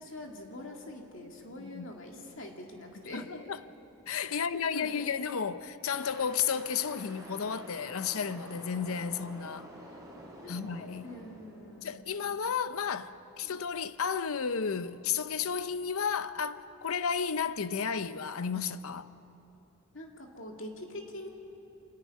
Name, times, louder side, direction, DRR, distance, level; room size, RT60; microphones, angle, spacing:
voice 1, 0.0-3.2 4.3-4.4 4.7-5.0 10.4-10.6 11.0-12.0 12.3-12.7 13.4-13.5 19.9-21.3, left 1 dB, 60° left, 2.3 m, -44 dB
voice 2, 3.1-3.6 4.1-9.7 10.5-11.1 11.8-19.1, left 6 dB, 75° left, 0.6 m, -33 dB
sound 1, 5.8-12.1, right 1 dB, 15° right, 3.8 m, -49 dB
27.0 x 10.5 x 9.4 m
head